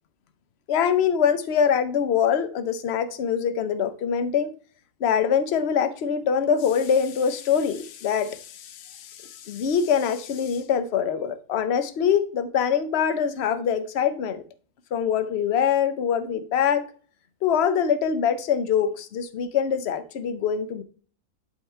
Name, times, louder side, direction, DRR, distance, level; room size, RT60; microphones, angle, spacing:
voice 1, 0.7-4.5 5.0-14.4 14.9-16.9 17.4-20.8, left 7 dB, 50° left, 0.9 m, -24 dB
11.5 x 3.8 x 4.5 m
omnidirectional pair, 1.7 m